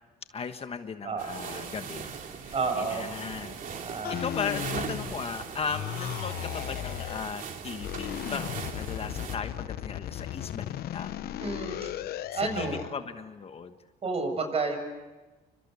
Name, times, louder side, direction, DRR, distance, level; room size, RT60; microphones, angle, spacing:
voice 1, 0.3-3.6 4.1-11.1 12.3-13.7, left 6 dB, 35° left, 8 dB, 1.3 m, -37 dB
sound 1, 1.2-9.4, right 6 dB, 50° right, 3.2 m, -39 dB
voice 2, 2.5-3.1 3.8-4.2 11.4-11.9 12.3-12.8 14.0-14.8, right 4 dB, 35° right, 6 dB, 7.4 m, -30 dB
sound 2, 4.0-5.4 5.7-7.3 7.8-13.0, left 12 dB, 65° left, 0.9 m, -36 dB
29.5 x 26.0 x 7.0 m, 1.2 s
cardioid pair, 110°, 17 cm